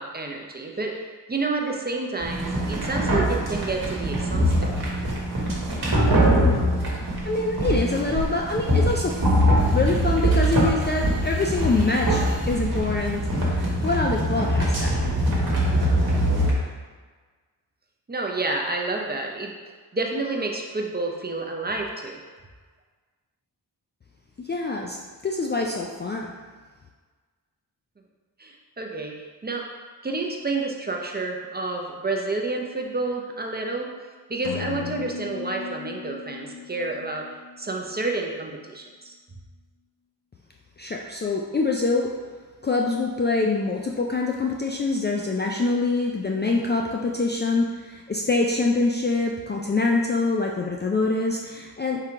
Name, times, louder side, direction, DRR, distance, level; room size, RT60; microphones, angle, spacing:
voice 1, 0.0-4.7 18.1-19.5 19.9-22.2 28.4-29.1 29.4-29.7 30.0-33.9 34.3-37.3 37.6-39.1, right 3 dB, 25° right, 1 dB, 0.6 m, -29 dB
sound 1, 2.2-16.5, equal, 55° right, 1.3 m, -23 dB
voice 2, 7.2-9.2 9.7-14.9 24.4-25.0 25.2-26.3 40.8-42.1 42.6-52.0, left 3 dB, 25° left, -1 dB, 0.4 m, -25 dB
sound 2, 34.4-38.2, left 7 dB, 75° left, 0.6 m, -37 dB
3.8 x 2.8 x 4.4 m, 1.4 s
cardioid pair, 65°, 43 cm